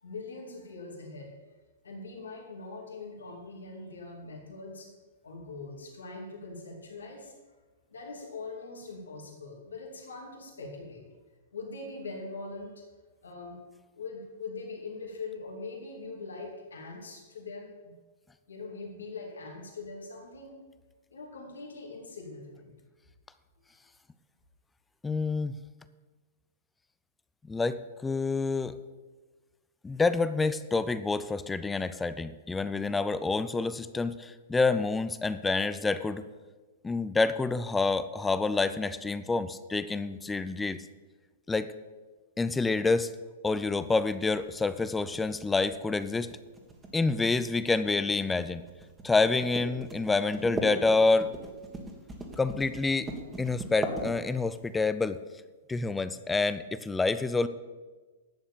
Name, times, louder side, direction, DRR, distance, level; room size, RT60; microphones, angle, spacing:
voice 1, 0.0-1.3 1.8-4.9 5.2-7.3 7.9-11.0 11.5-12.8 13.2-13.6 13.9-18.0 18.5-20.6 21.1-22.7 23.7-23.8, left 3 dB, 90° left, -1 dB, 2.7 m, -42 dB
voice 2, 25.0-25.5 27.4-28.8 29.8-36.2 36.8-40.8 41.5-41.7 42.4-43.1 43.4-46.3 46.9-48.6 49.0-51.3 52.4-53.1 53.4-55.2 55.7-57.5, left 3 dB, 10° left, 13 dB, 0.5 m, -28 dB
sound 1, 43.6-54.6, right 2 dB, 15° right, 2.0 m, -39 dB
11.0 x 7.2 x 7.0 m, 1.3 s
hypercardioid pair, 120°, 0 cm